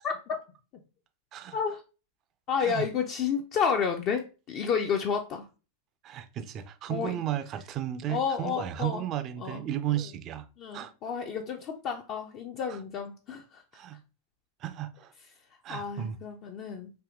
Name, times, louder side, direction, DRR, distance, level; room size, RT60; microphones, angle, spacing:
voice 1, 0.0-0.4 1.5-1.8 2.5-5.5 6.9-7.2 8.1-9.0 9.4-9.6 10.6-13.6 15.7-16.9, left 6 dB, 40° left, 0.4 m, -31 dB
voice 2, 6.0-10.5 10.7-10.9 13.7-14.0 14.6-15.1 15.6-16.2, right 11 dB, 35° right, 0.4 m, -34 dB
4.7 x 2.8 x 2.4 m
figure-of-eight pair, 90°, 0 cm